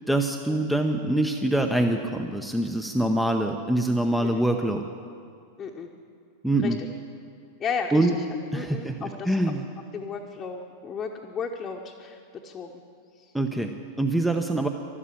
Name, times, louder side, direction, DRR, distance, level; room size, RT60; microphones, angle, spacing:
voice 1, 0.1-4.8 6.4-6.8 7.9-8.1 8.5-9.6 13.3-14.7, right 1 dB, ahead, 5 dB, 0.7 m, -24 dB
voice 2, 5.6-5.9 6.6-6.9 7.6-8.1 8.5-9.4 9.9-12.7 13.2-13.3, left 5 dB, 25° left, 0 dB, 1.0 m, -34 dB
12.5 x 12.5 x 8.4 m, 2.3 s
figure-of-eight pair, 90°, 0 cm